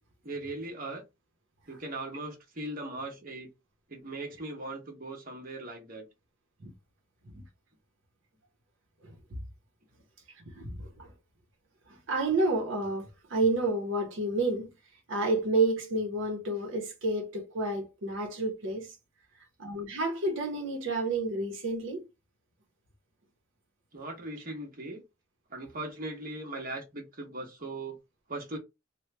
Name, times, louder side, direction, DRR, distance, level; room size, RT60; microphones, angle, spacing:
voice 1, 0.2-1.0 1.7-3.5 3.9-6.0 23.9-25.0 25.5-28.0 28.3-28.6, right 2 dB, 45° right, 1.0 m, -39 dB
voice 2, 10.5-11.1 12.1-14.7 15.1-19.0 19.6-22.1, right 2 dB, 80° right, 0.8 m, -30 dB
3.1 x 2.2 x 3.2 m
head